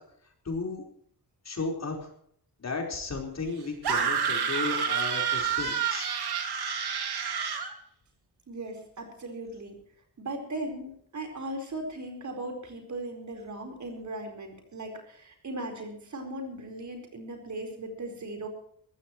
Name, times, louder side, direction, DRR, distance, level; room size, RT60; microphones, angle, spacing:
voice 1, 0.4-0.8 1.4-2.0 2.6-6.1, left 3 dB, 45° left, 2 dB, 4.5 m, -34 dB
sound 1, 3.8-7.7, right 7 dB, 80° right, 2.5 m, -28 dB
voice 2, 8.5-9.8 10.2-18.5, right 2 dB, 50° right, 3 dB, 4.6 m, -38 dB
22.5 x 15.5 x 3.2 m, 0.65 s
wide cardioid pair, 140°, 38 cm